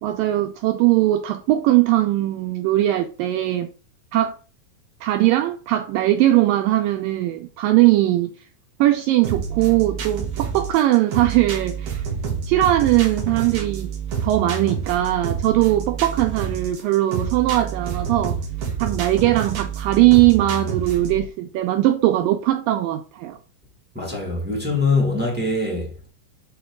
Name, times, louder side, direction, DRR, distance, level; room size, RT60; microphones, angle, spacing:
voice 1, 0.0-3.7 4.1-4.4 5.0-8.3 8.8-12.0 12.5-13.9 14.2-18.4 18.8-23.4, right 15 dB, 85° right, 2.0 m, -20 dB
sound 1, 9.2-21.2, right 6 dB, 55° right, 2.6 m, -28 dB
voice 2, 23.9-26.1, left 3 dB, 10° right, 0.7 m, -23 dB
8.3 x 3.7 x 4.8 m
omnidirectional pair, 4.5 m